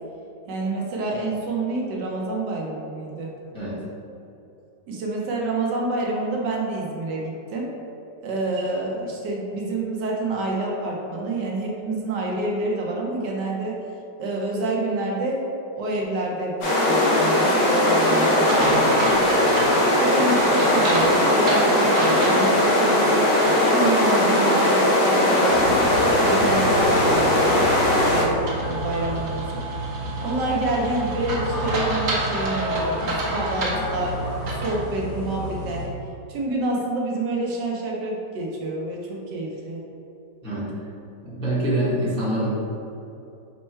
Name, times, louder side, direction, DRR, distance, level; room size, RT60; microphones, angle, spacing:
voice 1, 0.4-3.3 4.9-7.7 8.2-13.8 14.2-19.0 20.0-23.4 23.7-27.7 28.1-29.6 30.2-34.2 34.5-35.9 36.3-39.8, right 2 dB, 75° right, -2 dB, 1.3 m, -28 dB
sound 1, 16.6-28.2, left 1 dB, 80° left, 1.5 m, -19 dB
sound 2, 18.5-23.0 23.4-23.5 28.5-34.8, right 1 dB, 60° right, 1.0 m, -29 dB
sound 3, 25.5-35.9, equal, 35° left, 0.9 m, -32 dB
voice 2, 41.2-42.5, right 1 dB, 5° left, -9 dB, 0.6 m, -25 dB
5.3 x 2.2 x 4.3 m, 2.7 s
omnidirectional pair, 1.9 m